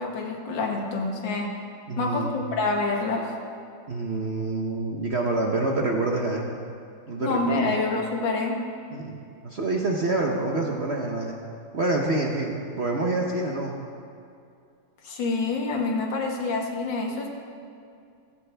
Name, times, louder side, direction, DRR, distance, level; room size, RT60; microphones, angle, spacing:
voice 1, 0.0-1.5 2.0-3.3 7.2-8.6 15.0-17.3, left 3 dB, 70° left, 1 dB, 2.1 m, -27 dB
voice 2, 1.9-2.5 3.9-6.5 7.1-7.8 8.9-9.2 9.4-11.4 11.7-13.8, right 2 dB, 45° right, 0 dB, 1.0 m, -27 dB
16.0 x 15.0 x 3.5 m, 2.4 s
omnidirectional pair, 2.1 m